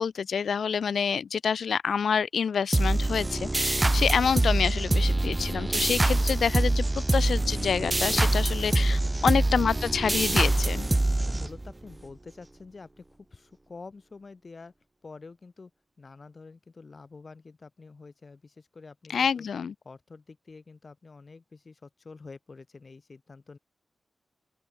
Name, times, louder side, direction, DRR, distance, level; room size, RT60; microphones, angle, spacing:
voice 1, 0.0-10.9 19.1-19.7, left 6 dB, 85° left, 0.5 m, -27 dB
sound 1, 2.7-11.9, right 2 dB, 20° right, 0.4 m, -25 dB
voice 2, 8.6-9.6 11.2-13.1 13.3-14.7 15.0-15.7 16.0-19.5 19.8-23.6, left 4 dB, 45° left, 7.2 m, -47 dB
open air
wide cardioid pair, 110°, 0 cm